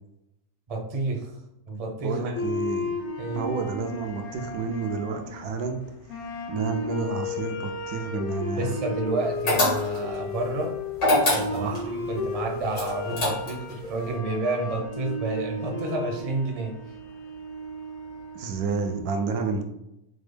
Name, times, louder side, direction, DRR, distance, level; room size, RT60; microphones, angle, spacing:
voice 1, 0.7-1.3 1.7-2.2 3.2-3.5 8.5-10.8 11.3-16.7, right 2 dB, 35° right, 0 dB, 0.5 m, -30 dB
voice 2, 2.0-2.9 3.3-5.8 6.5-8.8 11.2-12.0 18.3-19.6, right 4 dB, 80° right, 4 dB, 1.1 m, -30 dB
sound 1, 2.3-19.0, left 2 dB, 65° left, 0.5 m, -34 dB
sound 2, 9.5-10.2 11.0-11.9 12.7-13.7, left 2 dB, 85° left, 2.2 m, -23 dB
5.1 x 2.1 x 3.3 m, 0.85 s
omnidirectional pair, 1.6 m